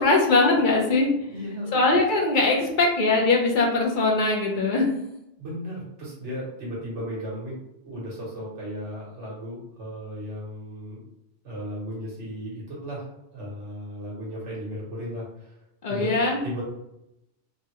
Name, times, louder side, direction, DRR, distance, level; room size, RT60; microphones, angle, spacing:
voice 1, 0.0-1.1 1.7-4.9 15.8-16.4, left 3 dB, 50° left, -1 dB, 0.8 m, -21 dB
voice 2, 1.3-1.8 5.4-11.0 11.4-15.6 15.9-16.2 16.4-16.6, equal, 85° right, -5 dB, 1.5 m, -35 dB
3.6 x 2.2 x 2.9 m, 0.84 s
omnidirectional pair, 1.2 m